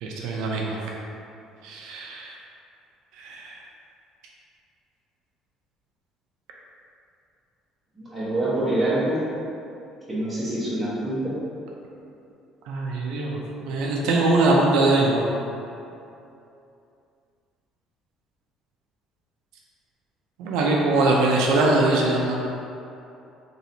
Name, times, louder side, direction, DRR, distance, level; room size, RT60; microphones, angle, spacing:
voice 1, 0.0-0.8 1.6-2.3 3.2-3.5 12.7-15.2 20.4-22.4, right 2 dB, 80° right, -2 dB, 0.5 m, -22 dB
voice 2, 8.0-9.2 10.1-11.3, right 1 dB, 10° right, -10 dB, 1.0 m, -25 dB
3.1 x 2.8 x 4.1 m, 2.7 s
cardioid pair, 170°, 0 cm